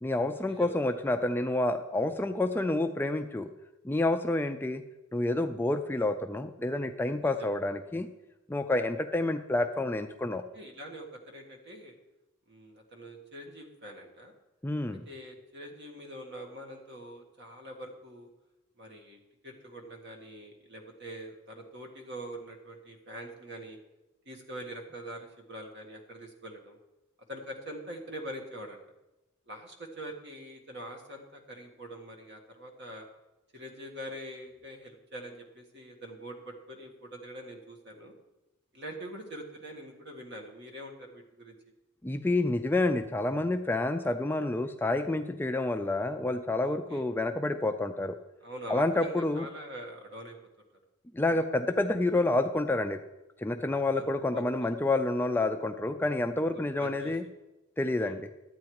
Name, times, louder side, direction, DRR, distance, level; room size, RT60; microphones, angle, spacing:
voice 1, 0.0-3.5 3.8-4.8 5.1-8.1 8.5-10.4 14.6-15.0 42.0-48.2 48.7-49.5 51.1-53.0 53.4-57.2 57.8-58.3, left 2 dB, 10° left, 7 dB, 0.3 m, -29 dB
voice 2, 10.5-11.9 12.5-14.3 15.0-18.3 18.8-23.8 24.2-26.8 27.3-28.8 29.5-33.1 33.5-38.1 38.7-41.5 46.6-47.0 48.4-50.4 53.9-54.7 56.5-57.1 57.9-58.1, right 1 dB, 55° right, 2 dB, 1.7 m, -44 dB
12.0 x 8.6 x 4.7 m, 1.0 s
head